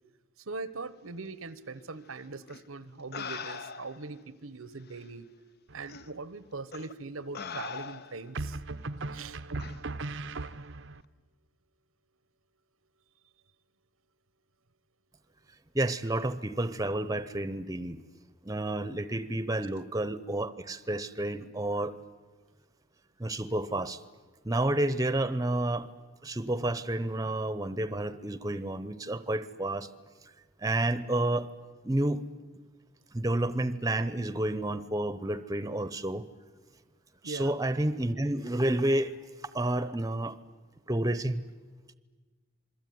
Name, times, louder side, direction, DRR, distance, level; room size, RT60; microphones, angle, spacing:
voice 1, 0.5-5.3 5.7-8.6 9.1-9.4 37.2-37.6, right 3 dB, 85° right, 1.1 m, -41 dB
sound 1, 2.5-2.6 3.1-4.1 4.9-5.0 5.9-6.1 6.7-6.9 7.3-8.3 9.6-9.8, left 6 dB, 50° left, 0.9 m, -40 dB
sound 2, 5.7-6.3 8.3-11.0, right 3 dB, 60° right, 0.7 m, -38 dB
voice 2, 15.7-18.0 18.5-21.9 23.2-24.0 24.4-25.9 26.2-29.9 30.6-31.5 31.8-32.2 33.1-36.2 37.2-39.1 39.5-40.3 40.9-41.4, right 1 dB, 15° right, 0.9 m, -30 dB
27.5 x 22.0 x 9.5 m
head